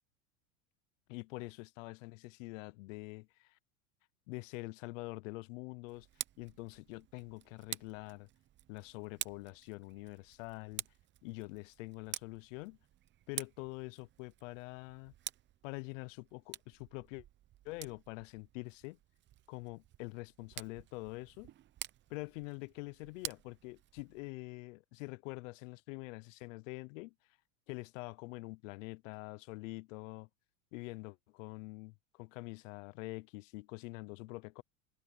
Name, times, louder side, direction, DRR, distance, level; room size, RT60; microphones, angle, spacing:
voice 1, 1.1-3.6 4.3-6.1 6.4-8.3 8.7-10.8 11.2-12.8 13.3-15.1 15.6-17.2 17.6-19.0 19.5-21.5 22.1-27.1 27.7-30.3 30.7-34.6, left 24 dB, 65° left, 0.7 m, -45 dB
Tick, 5.9-24.3, right 13 dB, 25° right, 0.7 m, -49 dB
supercardioid pair, 120°, 42 cm